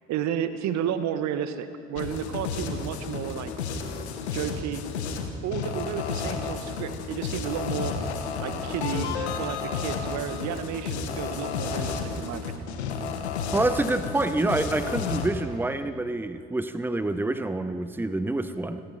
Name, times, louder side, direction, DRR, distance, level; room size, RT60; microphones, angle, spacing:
voice 1, 0.1-3.5 4.3-4.8 5.4-8.0 8.4-9.1 9.4-12.5, right 9 dB, 55° right, 11 dB, 1.3 m, -32 dB
sound 1, 2.0-15.3, left 5 dB, 80° left, 1.7 m, -32 dB
voice 2, 13.5-18.8, right 2 dB, 5° right, 11 dB, 1.0 m, -27 dB
28.5 x 21.0 x 4.3 m, 2.4 s
figure-of-eight pair, 55°, 33 cm